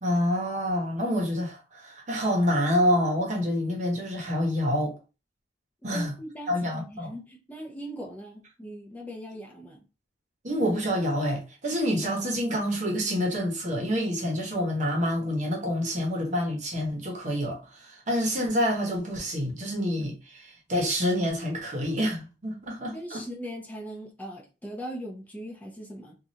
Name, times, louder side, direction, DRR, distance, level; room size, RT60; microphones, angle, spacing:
voice 1, 0.0-4.9 5.8-6.1 6.5-7.1 10.4-23.2, equal, 45° right, 0.9 m, -27 dB
voice 2, 5.9-9.8 22.9-26.2, equal, 10° left, 0.5 m, -40 dB
3.0 x 2.4 x 2.7 m
head